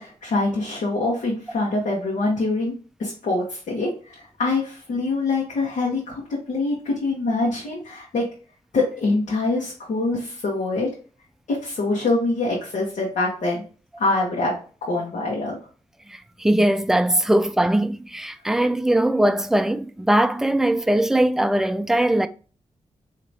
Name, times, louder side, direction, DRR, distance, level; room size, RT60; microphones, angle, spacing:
voice 1, 0.0-2.7 3.0-8.3 8.7-10.9 11.5-13.6 14.0-15.6, left 2 dB, 85° left, 1.2 m, -24 dB
voice 2, 16.1-22.3, right 1 dB, 5° right, 0.3 m, -20 dB
4.5 x 2.8 x 2.7 m
cardioid pair, 80°, 12 cm